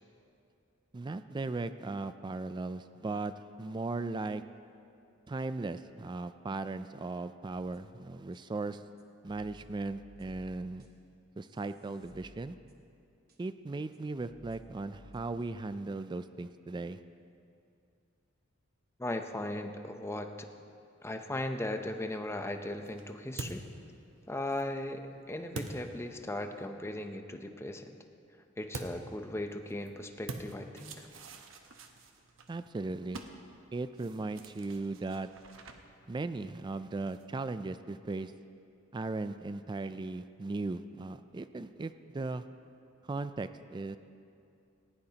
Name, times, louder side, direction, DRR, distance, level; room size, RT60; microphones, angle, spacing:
voice 1, 0.9-3.3 3.6-4.4 5.3-8.8 9.2-10.8 11.4-12.6 13.4-17.0 32.5-33.2 33.7-35.3 36.1-38.3 38.9-42.4 43.1-44.0, right 3 dB, 25° right, 12 dB, 0.3 m, -37 dB
sound 1, 7.4-7.9 8.3-8.4 9.0-11.1 11.4-13.0 13.3-13.4 13.9-14.0 14.3-15.7, equal, 55° right, 1.3 m, -58 dB
voice 2, 19.0-20.5 21.0-23.7 24.3-28.0 28.6-31.1, left 1 dB, 15° left, 6 dB, 0.7 m, -37 dB
sound 2, 22.2-26.7 28.7-37.5, right 2 dB, 80° right, 1.0 m, -47 dB
18.5 x 16.0 x 2.9 m, 2.5 s
head